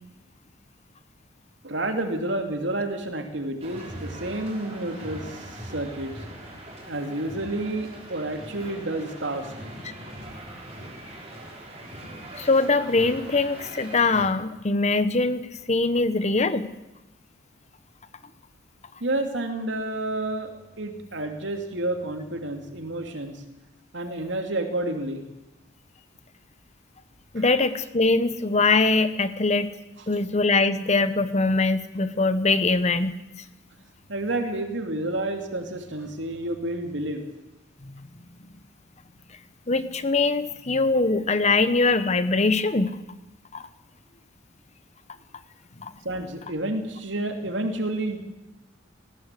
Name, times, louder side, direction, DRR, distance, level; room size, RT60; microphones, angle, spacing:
voice 1, 1.6-6.2 6.9-9.7 19.0-20.5 20.8-23.4 23.9-25.2 27.4-27.5 34.1-37.2 46.0-48.2, right 1 dB, 70° right, 5 dB, 2.7 m, -30 dB
sound 1, 3.6-14.3, right 1 dB, 35° right, 5.1 m, -41 dB
voice 2, 12.3-16.7 27.3-29.7 30.1-33.1 39.7-43.0 43.5-43.7 45.8-45.9, left 3 dB, 35° left, 12 dB, 1.0 m, -22 dB
19.5 x 16.5 x 8.3 m, 0.95 s
head